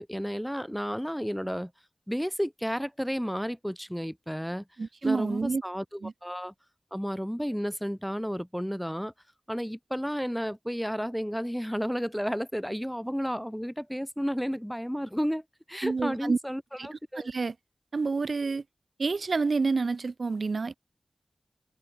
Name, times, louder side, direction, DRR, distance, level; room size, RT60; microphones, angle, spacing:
voice 1, 0.0-1.7 2.1-4.6 5.0-6.5 6.9-9.1 9.5-15.4 15.7-17.3, equal, ahead, 0.6 m, -32 dB
voice 2, 4.8-5.6 6.0-6.1 15.8-16.4 16.8-17.5 17.9-18.6 19.0-20.8, right 4 dB, 80° right, 0.7 m, -28 dB
wide cardioid pair, 50°, 0 cm